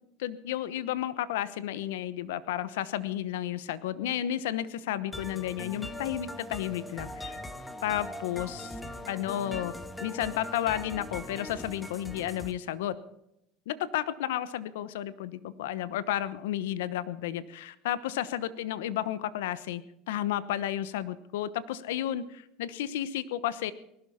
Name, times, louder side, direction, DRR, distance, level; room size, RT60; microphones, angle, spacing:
voice 1, 0.2-7.4 7.8-8.8 9.1-9.7 10.0-13.0 13.7-23.7, left 12 dB, 85° left, 16 dB, 1.0 m, -32 dB
sound 1, 5.1-12.5, left 1 dB, 10° left, 1.8 m, -41 dB
19.5 x 12.5 x 5.7 m, 0.79 s
supercardioid pair, 110°, 0 cm